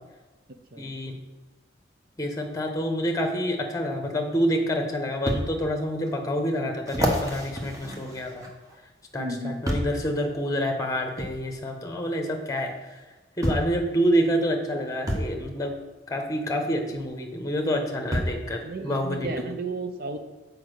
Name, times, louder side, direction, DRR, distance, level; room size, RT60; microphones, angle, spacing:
voice 1, 0.8-1.2 2.2-8.4 9.1-13.0 13.4-15.7 16.1-19.5, equal, 20° left, 4 dB, 1.0 m, -27 dB
sound 1, 5.3-5.4 6.1-6.2 6.9-8.8 9.6-10.0 11.2-11.3 12.6-12.7 13.4-13.8 15.1-15.3 16.9-17.0 18.1-18.4 19.2-19.3, equal, 15° right, 1.1 m, -28 dB
voice 2, 9.2-9.7 18.6-20.2, right 2 dB, 55° right, 7 dB, 0.8 m, -33 dB
7.1 x 5.0 x 6.4 m, 1.2 s
head